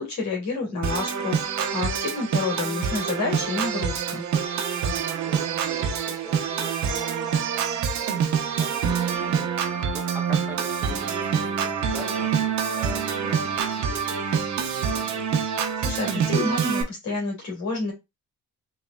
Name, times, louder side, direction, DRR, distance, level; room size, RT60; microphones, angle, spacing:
voice 1, 0.0-4.2 15.8-17.9, left 3 dB, 65° left, -1 dB, 2.4 m, -29 dB
Organ, 0.8-16.8, right 7 dB, 65° right, 0.9 m, -26 dB
voice 2, 5.2-7.3 8.0-12.3 12.7-14.2, right 1 dB, 5° right, -1 dB, 1.3 m, -43 dB
4.1 x 3.2 x 2.4 m, 0.23 s
cardioid pair, 90°, 30 cm